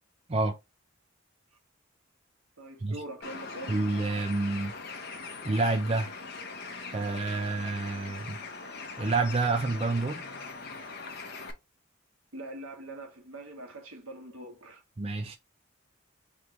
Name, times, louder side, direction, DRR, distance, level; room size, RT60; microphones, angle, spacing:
voice 1, 2.6-3.8 12.3-14.8, right 1 dB, 85° right, 1.6 m, -43 dB
Bird, 3.2-11.5, left 4 dB, 50° left, 0.8 m, -41 dB
voice 2, 3.7-4.8 5.4-6.1 6.9-8.4 9.0-10.2 15.0-15.4, right 3 dB, 30° right, 0.5 m, -28 dB
3.6 x 3.2 x 3.7 m
head